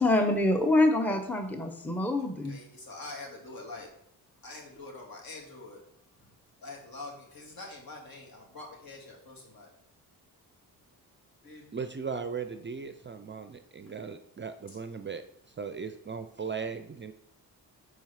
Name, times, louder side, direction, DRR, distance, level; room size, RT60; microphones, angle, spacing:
voice 1, 0.0-2.6, left 2 dB, 5° left, 5 dB, 0.7 m, -25 dB
voice 2, 2.2-3.9 4.4-5.8 6.2-6.3 6.6-9.7 11.4-11.8 14.7-14.8, left 2 dB, 55° left, -1 dB, 2.2 m, -45 dB
voice 3, 11.7-15.2 15.6-17.1, right 5 dB, 30° right, 9 dB, 0.5 m, -37 dB
4.8 x 4.6 x 5.7 m, 0.73 s
cardioid pair, 65°, 41 cm